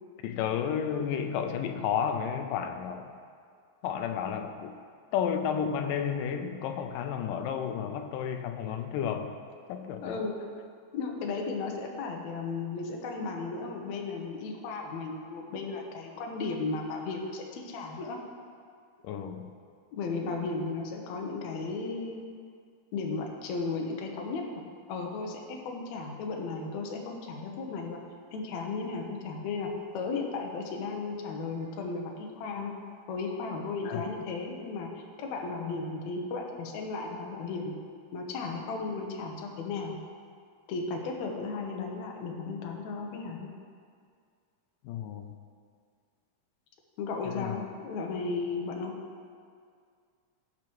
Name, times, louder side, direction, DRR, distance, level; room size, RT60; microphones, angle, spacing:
voice 1, 0.2-3.1 3.8-4.8 5.1-9.4 9.7-10.2 19.0-19.5 33.9-34.1 44.8-45.4 47.3-47.6, left 8 dB, 85° left, 7 dB, 2.2 m, -32 dB
voice 2, 10.0-10.3 10.9-18.2 19.9-22.3 22.9-24.4 24.9-28.0 28.3-32.8 33.1-34.9 35.2-37.8 38.1-40.0 40.7-43.5 47.0-49.0, left 4 dB, 70° left, 1 dB, 2.0 m, -35 dB
17.0 x 5.8 x 3.1 m, 2.2 s
omnidirectional pair, 3.7 m